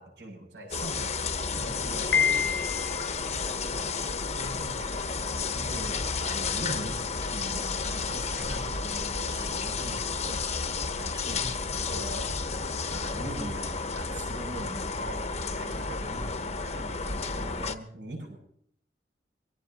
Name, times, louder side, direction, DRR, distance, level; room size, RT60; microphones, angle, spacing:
voice 1, 0.0-2.6 3.3-12.4 12.9-18.4, right 1 dB, 85° right, -1 dB, 7.7 m, -42 dB
sound 1, 0.7-17.8, left 4 dB, 40° left, 1.1 m, -32 dB
Piano, 2.1-3.2, left 7 dB, 85° left, 0.5 m, -26 dB
23.5 x 18.0 x 2.9 m, 0.63 s
head